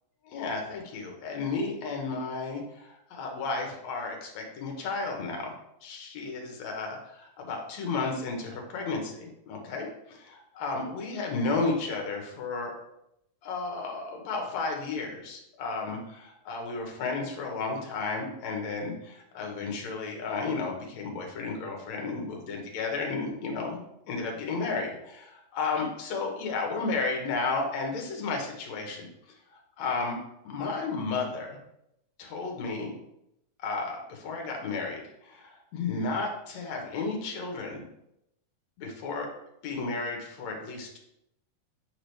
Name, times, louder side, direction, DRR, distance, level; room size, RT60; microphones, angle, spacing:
voice 1, 0.3-5.5 5.8-12.7 13.4-23.8 24.1-29.1 29.5-30.2 30.4-31.6 32.2-32.9 33.6-37.9 38.8-39.3 39.6-41.0, left 3 dB, 70° left, 1 dB, 2.2 m, -33 dB
6.9 x 4.8 x 3.3 m, 0.81 s
omnidirectional pair, 3.6 m